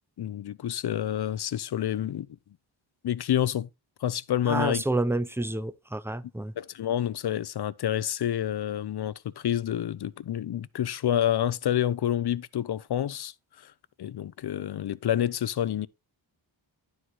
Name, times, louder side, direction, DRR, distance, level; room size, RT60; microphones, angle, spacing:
voice 1, 0.2-2.3 3.0-3.7 4.0-4.8 6.6-13.3 13.6-13.7 14.0-15.9, left 11 dB, 60° left, 0.6 m, -28 dB
voice 2, 4.5-6.5, right 2 dB, 5° right, 0.4 m, -29 dB
11.5 x 4.7 x 4.0 m
wide cardioid pair, 160°, 46 cm